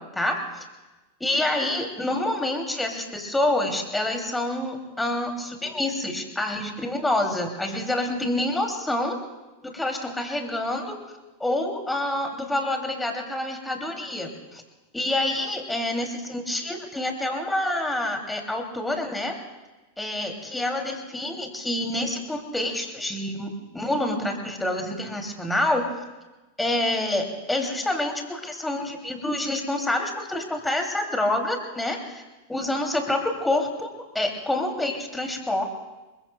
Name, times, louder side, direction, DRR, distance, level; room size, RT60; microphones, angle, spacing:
voice 1, 0.1-0.7 1.2-9.2 9.6-11.0 11.4-14.6 14.9-19.4 20.0-25.8 26.6-32.2 32.5-33.9 34.1-35.6, left 1 dB, 5° left, 3 dB, 2.6 m, -27 dB
27.5 x 22.5 x 2.2 m, 1.1 s
figure-of-eight pair, 90°, 0 cm